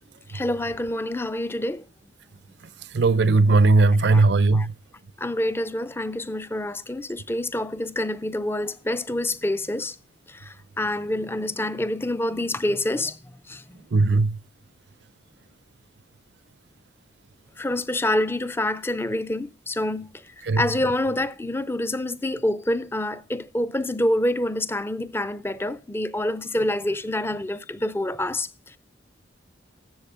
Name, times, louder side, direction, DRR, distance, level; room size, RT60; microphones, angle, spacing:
voice 1, 0.3-1.8 4.1-4.3 4.5-4.7 5.2-10.0 10.3-13.8 17.6-28.8, left 1 dB, 15° left, 0.5 m, -27 dB
voice 2, 2.9-4.7 13.9-14.4 20.5-20.6, right 3 dB, 65° right, 0.5 m, -18 dB
13.5 x 7.9 x 3.6 m
head